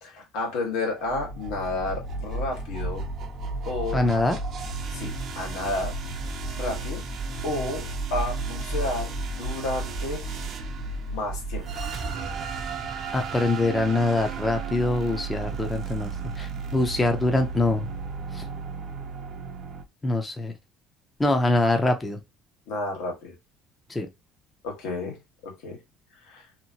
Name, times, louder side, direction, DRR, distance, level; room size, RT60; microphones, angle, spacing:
voice 1, 0.0-3.0 3.6-4.0 4.9-6.3 6.6-7.0 7.4-10.3 11.1-12.2 22.7-23.3 24.6-25.2 25.4-25.8 26.3-26.5, left 2 dB, 85° left, 1.5 m, -31 dB
sound 1, 1.0-18.1, right 1 dB, 45° left, 1.1 m, -35 dB
sound 2, 1.0-19.8, right 6 dB, 45° right, 0.5 m, -36 dB
voice 2, 3.9-4.4 13.1-17.9 18.3-18.4 20.0-20.5 21.2-22.2 23.9-24.1, left 2 dB, 15° left, 0.5 m, -24 dB
2.8 x 2.5 x 2.7 m
cardioid pair, 135°, 0 cm